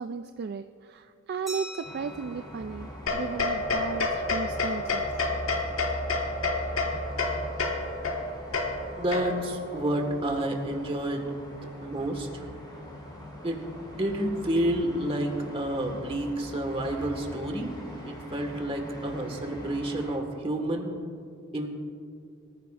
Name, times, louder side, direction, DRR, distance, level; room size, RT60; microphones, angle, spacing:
voice 1, 0.0-5.1, right 5 dB, 50° right, 8 dB, 0.3 m, -35 dB
Glass, 1.5-3.9, equal, ahead, 3.2 m, -45 dB
sound 1, 1.8-20.2, left 1 dB, 20° left, 3.4 m, -42 dB
sound 2, 3.1-9.6, left 2 dB, 80° left, 1.6 m, -29 dB
voice 2, 9.0-12.4 13.4-17.7 18.0-21.0 21.5-21.7, right 1 dB, 30° right, 3 dB, 1.6 m, -30 dB
23.5 x 14.5 x 2.5 m, 2.3 s
head